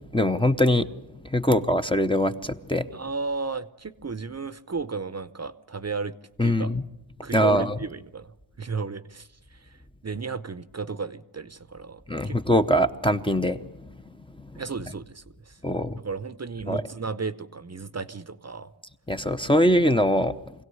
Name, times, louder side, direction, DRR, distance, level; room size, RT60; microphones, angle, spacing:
voice 1, 0.1-0.9 1.2-2.9 6.4-6.8 7.3-7.8 12.1-13.6 14.4-14.6 15.6-16.0 16.7-16.8 19.1-20.3, equal, 10° left, 7 dB, 0.8 m, -22 dB
voice 2, 2.9-6.1 6.4-6.7 7.2-9.8 10.0-12.4 14.6-15.6 16.0-18.7, right 4 dB, 35° right, 14 dB, 0.8 m, -34 dB
25.0 x 17.0 x 9.6 m, 0.92 s
wide cardioid pair, 145°, 46 cm